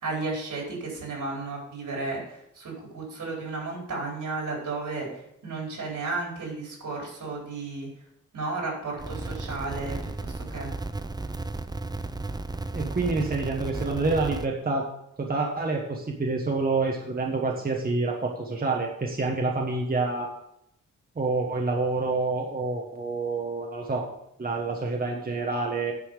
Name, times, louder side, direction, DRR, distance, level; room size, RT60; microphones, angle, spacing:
voice 1, 0.0-5.1 5.4-7.9 8.3-10.7, right 3 dB, 75° right, -1 dB, 4.3 m, -33 dB
sound 1, 9.0-14.5, right 2 dB, 15° right, 0.4 m, -34 dB
voice 2, 12.7-14.9 15.2-20.3 21.2-24.1 24.4-25.9, right 3 dB, 30° right, 0 dB, 1.2 m, -27 dB
9.5 x 5.5 x 6.6 m, 0.77 s
wide cardioid pair, 150°, 31 cm